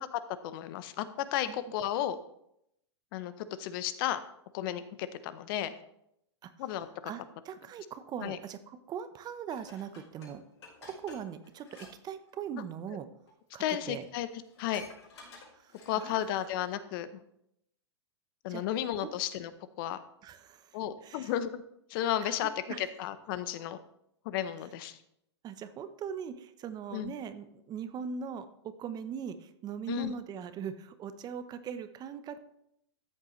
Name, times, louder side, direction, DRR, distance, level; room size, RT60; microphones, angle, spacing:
voice 1, 0.1-2.2 3.1-4.2 4.5-5.7 6.6-6.9 8.2-8.4 13.6-14.3 14.6-14.8 15.9-17.2 18.4-19.5 19.8-20.0 20.7-21.6 21.9-22.5 22.8-23.8 24.2-25.0 26.9-27.1 29.9-30.1, left 11 dB, 50° left, 13 dB, 0.7 m, -33 dB
voice 2, 7.1-10.4 10.8-13.1 13.5-14.1 15.5-16.5 18.5-18.6 19.0-19.2 20.2-21.3 22.2-22.3 22.7-22.9 25.4-32.4, right 7 dB, 25° right, 12 dB, 0.7 m, -41 dB
Dishes pots and pans, 9.5-11.9 12.2-12.5 13.3-13.4 13.7-13.8 14.0-16.2 16.7-16.8, left 3 dB, 70° left, 4.5 m, -52 dB
13.5 x 7.5 x 3.1 m, 0.77 s
hypercardioid pair, 115°, 15 cm